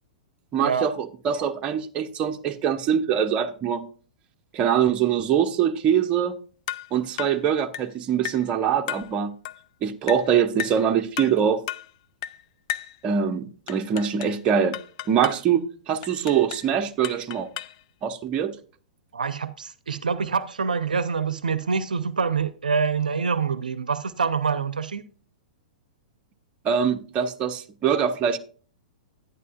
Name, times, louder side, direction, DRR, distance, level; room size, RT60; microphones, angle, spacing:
voice 1, 0.5-3.9 4.5-6.3 6.9-9.3 9.8-11.6 13.0-14.8 15.1-17.5 18.0-18.5 26.6-28.4, right 8 dB, 30° right, 0.9 m, -23 dB
sound 1, 6.7-6.9 7.2-7.4 7.7-7.9 8.2-8.5 8.9-9.1 9.4-9.6 10.1-10.3 10.6-10.8 11.2-11.4 11.7-11.9 12.2-12.4 12.7-13.0 13.7-14.4 14.7-15.4 16.0-16.7 17.0-17.8, left 11 dB, 50° left, 0.4 m, -34 dB
voice 2, 19.1-25.0, right 5 dB, 75° right, 0.7 m, -26 dB
11.0 x 9.9 x 2.4 m
figure-of-eight pair, 105°, 4 cm